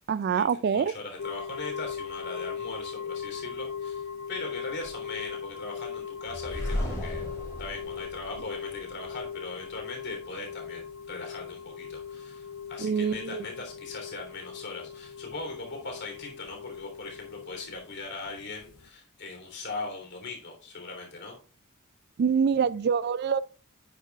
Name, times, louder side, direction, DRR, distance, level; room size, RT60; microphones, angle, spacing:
voice 1, 0.1-0.9 12.8-13.4 22.2-23.4, right 6 dB, 50° right, 0.3 m, -25 dB
voice 2, 0.7-7.2 7.6-21.4, left 3 dB, 55° left, 3.4 m, -40 dB
sound 1, 1.2-18.9, left 7 dB, 70° left, 0.6 m, -39 dB
sound 2, 6.3-9.2, equal, 15° left, 4.9 m, -35 dB
10.0 x 9.1 x 2.4 m
head